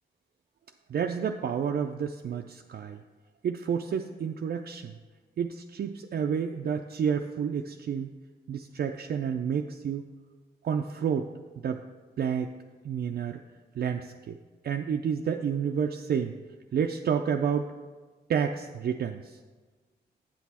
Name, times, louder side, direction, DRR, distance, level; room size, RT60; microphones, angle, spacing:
voice 1, 0.9-3.0 3.4-5.0 5.4-8.1 8.5-10.0 10.6-11.3 11.6-11.8 12.2-12.5 12.8-13.4 13.8-14.4 14.6-16.3 16.7-17.7 18.3-19.4, right 7 dB, 65° right, 4 dB, 0.4 m, -30 dB
8.4 x 6.1 x 4.2 m, 1.3 s
cardioid pair, 50°, 17 cm